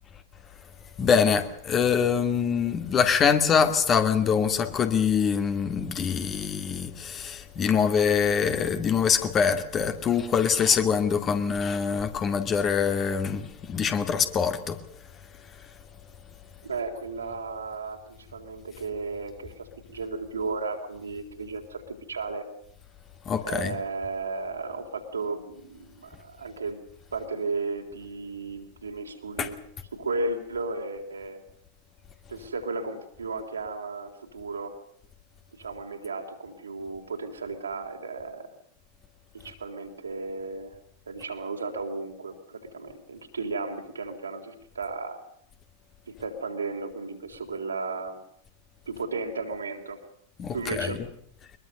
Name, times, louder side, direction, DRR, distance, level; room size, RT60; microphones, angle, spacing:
voice 1, 1.0-14.8 23.3-23.7 29.4-29.5 50.4-50.9, left 6 dB, 25° left, 2.3 m, -24 dB
voice 2, 16.6-22.5 23.4-26.8 27.1-29.6 29.9-31.4 32.3-34.8 35.5-38.5 39.3-40.8 41.1-45.2 46.1-48.2 48.9-50.0 50.5-51.0, right 3 dB, 75° right, 3.6 m, -34 dB
23.0 x 21.5 x 6.7 m
figure-of-eight pair, 90°, 0 cm